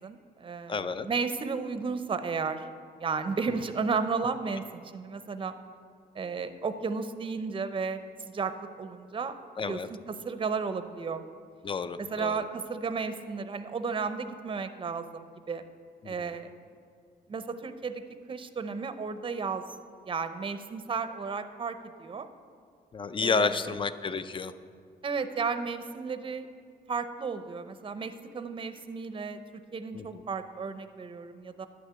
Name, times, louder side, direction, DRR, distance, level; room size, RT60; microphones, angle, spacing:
voice 1, 0.0-2.6 3.0-5.5 6.1-9.3 9.7-11.2 12.0-15.6 16.0-16.5 17.3-18.0 18.3-19.6 20.1-22.3 23.2-23.8 25.0-26.5 26.9-29.4 29.7-31.7, right 5 dB, 30° right, 10 dB, 0.6 m, -33 dB
voice 2, 0.7-1.1 9.6-9.9 11.6-12.4 16.0-16.3 22.9-24.5 29.9-30.2, left 4 dB, 30° left, 13 dB, 0.4 m, -30 dB
11.0 x 6.6 x 8.5 m, 2.2 s
wide cardioid pair, 160°, 17 cm